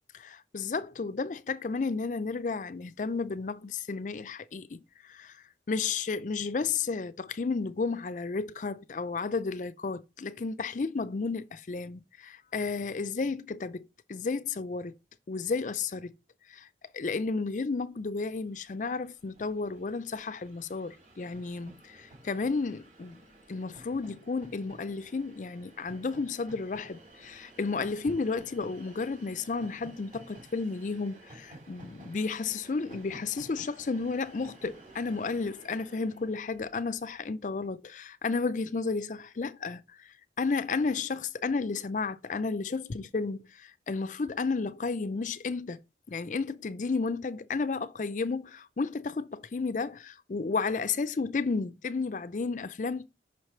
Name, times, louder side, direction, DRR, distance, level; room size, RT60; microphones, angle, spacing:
voice 1, 0.1-5.4 5.7-14.9 15.3-16.1 16.5-16.7 16.9-23.2 23.5-45.8 46.1-53.0, left 4 dB, 45° left, 0.4 m, -32 dB
Train, 18.4-18.5 18.6-37.0, right 1 dB, 45° right, 2.5 m, -53 dB
5.7 x 4.8 x 4.3 m
head